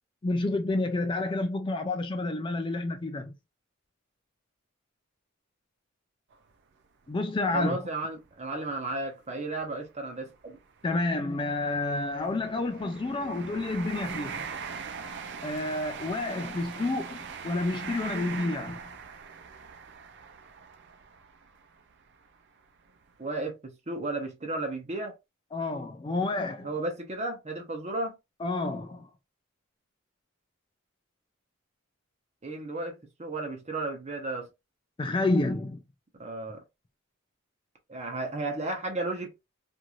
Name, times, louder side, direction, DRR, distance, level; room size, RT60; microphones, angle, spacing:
voice 1, 0.2-3.4 7.1-7.9 10.8-14.5 15.4-18.8 25.5-26.7 28.4-29.1 35.0-35.8, left 2 dB, 25° left, 0.3 m, -29 dB
sound 1, 6.3-6.5 7.1-7.2 8.3-8.4 8.7-8.9 9.6-22.3 22.8-23.0, right 6 dB, 60° right, 0.4 m, -41 dB
voice 2, 7.5-10.6 23.2-25.1 26.6-28.2 32.4-34.5 36.1-36.6 37.9-39.3, right 2 dB, 35° right, 0.8 m, -34 dB
3.0 x 2.6 x 2.5 m
head